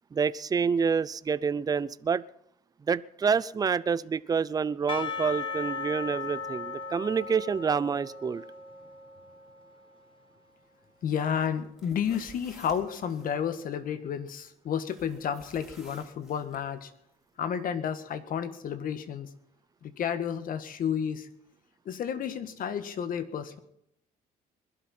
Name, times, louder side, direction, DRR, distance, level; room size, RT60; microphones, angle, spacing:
voice 1, 0.1-2.3 2.8-8.4, right 6 dB, 20° right, 18 dB, 0.5 m, -28 dB
Percussion / Church bell, 4.9-9.9, left 5 dB, 30° left, 1.7 m, -37 dB
voice 2, 11.0-16.9 17.4-19.3 19.8-21.3 21.8-23.6, left 8 dB, 55° left, 11 dB, 1.6 m, -31 dB
sound 1, 11.6-13.3 14.9-16.6, right 1 dB, ahead, 3.7 m, -53 dB
21.5 x 12.0 x 4.4 m, 0.76 s
cardioid pair, 110°, 17 cm